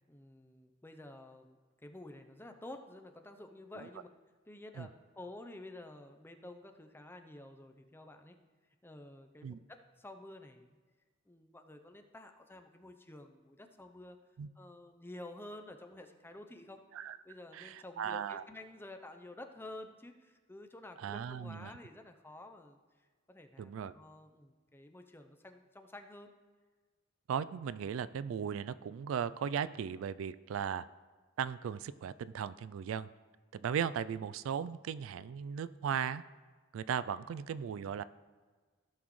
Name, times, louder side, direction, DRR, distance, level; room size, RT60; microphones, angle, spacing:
voice 1, 0.1-4.1 4.5-4.9 5.1-8.4 8.8-10.8 11.3-14.2 14.6-16.8 17.2-22.8 23.3-26.3 37.2-37.4, left 1 dB, 10° left, 6 dB, 0.6 m, -51 dB
voice 2, 17.5-18.4 21.0-21.7 23.6-23.9 27.3-30.9 31.4-33.1 33.5-36.2 36.7-38.0, right 7 dB, 80° right, 17 dB, 0.3 m, -37 dB
15.5 x 6.1 x 3.1 m, 1.4 s
head